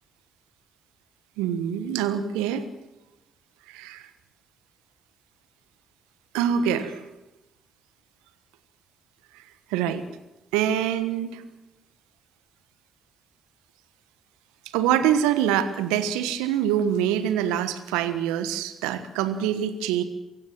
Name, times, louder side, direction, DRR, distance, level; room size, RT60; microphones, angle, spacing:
voice 1, 1.4-2.6 3.7-4.0 6.3-7.0 9.7-10.0 10.5-11.4 14.7-20.0, right 9 dB, 75° right, 11 dB, 1.3 m, -25 dB
24.0 x 16.0 x 7.5 m, 1.0 s
hypercardioid pair, 45°, 0 cm